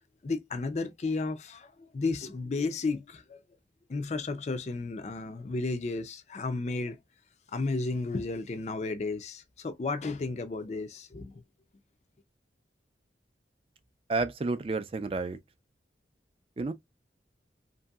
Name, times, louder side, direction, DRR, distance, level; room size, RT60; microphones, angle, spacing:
voice 1, 0.2-3.4 3.9-7.0 7.5-11.4, left 3 dB, 40° left, 0.4 m, -33 dB
voice 2, 14.1-15.4 16.6-16.7, right 3 dB, 30° right, 0.4 m, -30 dB
3.0 x 2.6 x 2.3 m
head